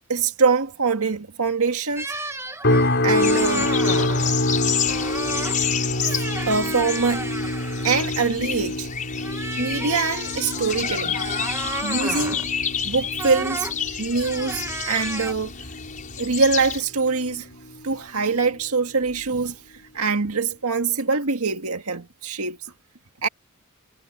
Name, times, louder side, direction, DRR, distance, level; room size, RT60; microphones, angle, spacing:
voice 1, 0.1-2.1 3.0-3.8 6.5-7.3 7.8-8.9 9.6-11.2 11.8-12.4 12.8-13.7 14.0-15.5 16.2-17.5 17.8-19.6 19.9-22.6 23.2-23.3, right 4 dB, 85° right, 1.9 m, -23 dB
sound 1, 2.0-4.4 4.9-5.6 5.9-8.1 9.2-12.5 13.2-13.8 14.1-15.3, right 2 dB, 10° right, 1.2 m, -33 dB
sound 2, 2.6-17.8 18.2-18.6 19.1-19.3, left 1 dB, 55° left, 5.7 m, -27 dB
sound 3, 3.2-16.8, left 8 dB, 35° left, 5.7 m, -30 dB
head